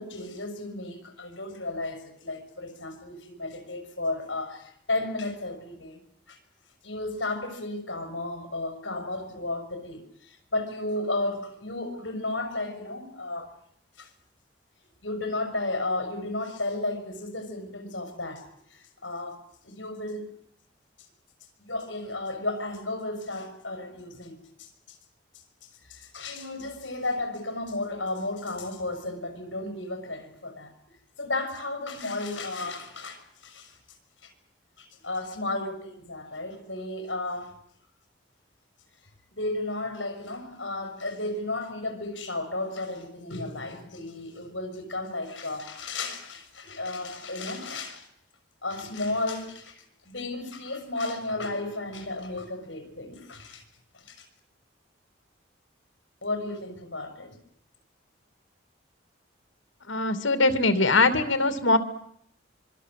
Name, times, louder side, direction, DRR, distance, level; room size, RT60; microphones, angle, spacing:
voice 1, 0.0-6.0 6.3-6.4 6.8-13.5 14.0-14.1 15.0-18.5 18.7-20.3 21.6-24.7 25.9-30.7 31.2-33.8 34.2-34.3 34.8-37.5 39.3-48.1 48.6-53.6 53.9-54.2 56.2-57.3, left 2 dB, 70° left, 6.0 m, -33 dB
voice 2, 59.9-61.8, left 3 dB, 85° left, 2.7 m, -22 dB
25.5 x 24.0 x 7.7 m
head